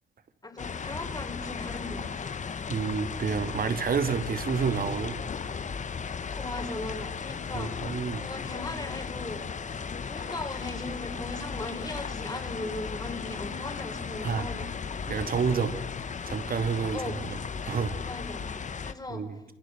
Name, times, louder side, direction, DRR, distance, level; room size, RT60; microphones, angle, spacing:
voice 1, 0.4-2.3 6.3-7.8 8.2-9.4 10.0-14.7 16.9-17.2 18.1-18.4 18.8-19.2, left 2 dB, 20° left, 5 dB, 4.5 m, -38 dB
sound 1, 0.6-18.9, left 6 dB, 40° left, 1.4 m, -36 dB
voice 2, 2.7-5.2 7.5-8.2 14.2-14.5 15.1-15.7 16.2-17.2 17.6-18.0 19.1-19.3, right 6 dB, 45° right, 10 dB, 2.9 m, -29 dB
27.5 x 27.5 x 7.9 m, 0.80 s
cardioid pair, 90°, 20 cm